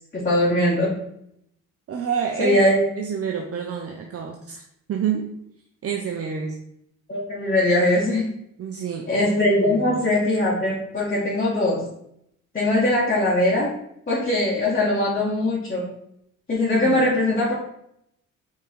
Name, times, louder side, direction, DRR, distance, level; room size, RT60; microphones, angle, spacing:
voice 1, 0.1-0.9 2.4-2.8 7.1-8.2 9.1-11.8 12.5-13.7 14.1-15.9 16.5-17.5, left 1 dB, 30° left, -7 dB, 2.1 m, -21 dB
voice 2, 1.9-2.6 3.0-4.6 4.9-5.3 5.8-6.6 8.6-9.1 9.6-9.8 16.7-17.0, right 7 dB, 50° right, 3 dB, 0.8 m, -28 dB
5.5 x 3.9 x 4.7 m, 0.75 s
cardioid pair, 90°, 30 cm